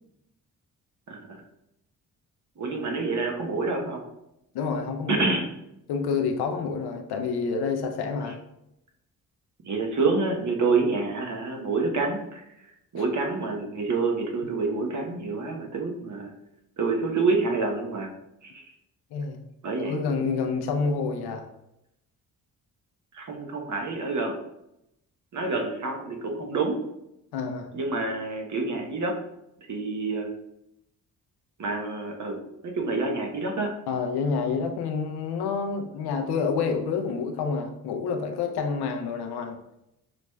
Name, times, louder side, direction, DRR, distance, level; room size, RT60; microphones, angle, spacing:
voice 1, 2.6-4.0 5.1-5.5 9.6-12.4 12.9-16.3 16.8-18.1 19.6-19.9 23.2-24.4 25.3-26.8 27.7-29.2 29.7-30.3 31.6-32.4 32.6-33.7, right 3 dB, 45° right, 2 dB, 1.0 m, -27 dB
voice 2, 4.5-5.3 5.9-8.4 13.0-13.1 19.1-19.4 19.8-21.4 27.3-27.7 33.9-39.6, left 5 dB, 70° left, 4 dB, 0.7 m, -28 dB
6.2 x 3.0 x 2.3 m, 0.83 s
hypercardioid pair, 45°, 41 cm